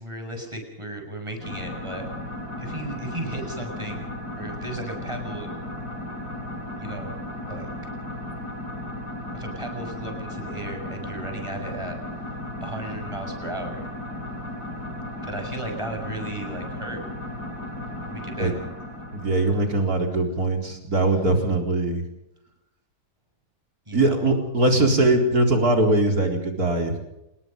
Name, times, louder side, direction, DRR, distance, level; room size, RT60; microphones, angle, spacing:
voice 1, 0.0-2.1 2.6-4.1 4.4-5.5 6.8-7.1 7.5-7.7 9.3-13.9 15.2-17.0 18.1-18.6 23.9-24.3, right 1 dB, 15° right, 4 dB, 6.9 m, -35 dB
sound 1, 1.4-20.3, left 1 dB, 70° left, 6.6 m, -35 dB
voice 2, 19.1-22.0 23.9-27.0, right 2 dB, 60° right, 3 dB, 4.6 m, -21 dB
28.0 x 20.5 x 5.3 m, 0.89 s
omnidirectional pair, 1.8 m